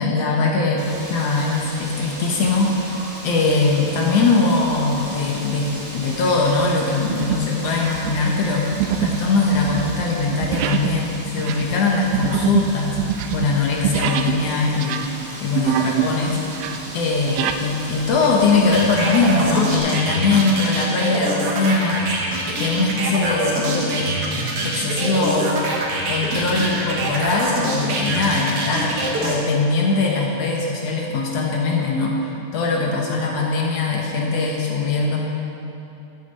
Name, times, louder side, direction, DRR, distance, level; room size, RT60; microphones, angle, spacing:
voice 1, 0.0-2.8 3.2-13.0 13.3-15.0 15.4-16.4 16.9-24.2 24.6-25.6 26.1-28.9 29.2-35.2, left 3 dB, 70° left, -1 dB, 1.6 m, -21 dB
Wind, 0.8-19.8, right 1 dB, 35° right, 1.1 m, -36 dB
sound 1, 5.4-5.7 6.2-6.5 7.1-7.6 7.8-14.4 14.7-16.1 16.4-17.6, right 9 dB, 80° right, 1.7 m, -25 dB
sound 2, 18.7-29.4, right 2 dB, 55° right, 2.0 m, -25 dB
13.5 x 9.2 x 4.1 m, 2.9 s
omnidirectional pair, 3.9 m